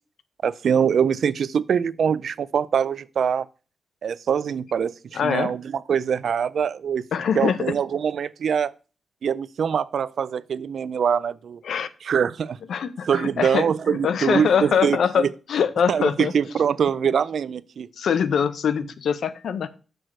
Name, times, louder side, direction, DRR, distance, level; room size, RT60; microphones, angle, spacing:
voice 1, 0.4-3.5 4.0-7.1 7.4-8.7 9.2-11.6 12.0-12.6 13.0-15.3 15.9-17.9, right 7 dB, 65° right, 0.3 m, -23 dB
voice 2, 5.1-5.5 7.1-7.7 11.6-11.9 12.7-16.3 17.0-17.1 18.0-19.7, left 7 dB, 85° left, 0.6 m, -23 dB
6.4 x 6.1 x 4.6 m
wide cardioid pair, 160°, 0 cm